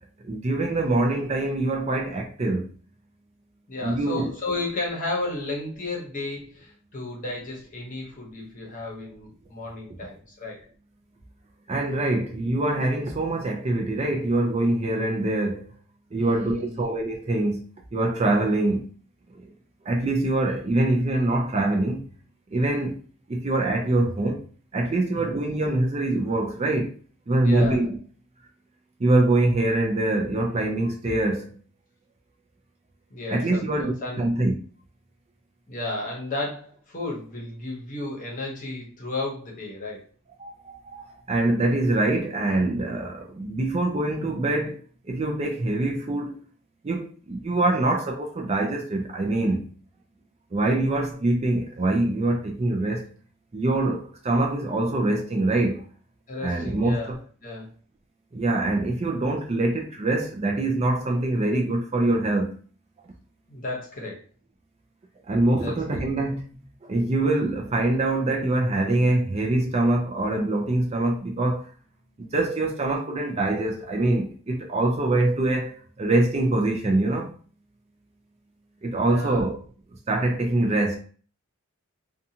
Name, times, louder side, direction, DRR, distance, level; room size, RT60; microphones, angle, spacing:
voice 1, 0.2-2.7 3.8-4.3 11.7-15.7 16.1-17.6 17.9-18.8 19.3-19.5 19.8-22.1 22.5-23.0 23.3-24.4 24.7-27.0 27.3-28.0 29.0-31.5 33.3-34.5 40.4-46.4 46.8-49.7 50.5-53.1 53.5-55.8 56.4-57.2 58.3-62.5 63.0-63.1 65.3-71.7 72.2-77.3 78.8-79.6 80.1-81.0, right 2 dB, 30° right, 0.4 m, -24 dB
voice 2, 3.7-10.6 16.2-16.9 25.1-25.5 27.4-27.9 33.1-34.3 35.7-40.1 56.3-57.1 57.4-57.7 63.5-64.2 65.6-66.0 78.9-79.5, left 2 dB, 35° left, 0.9 m, -33 dB
2.6 x 2.3 x 2.8 m
head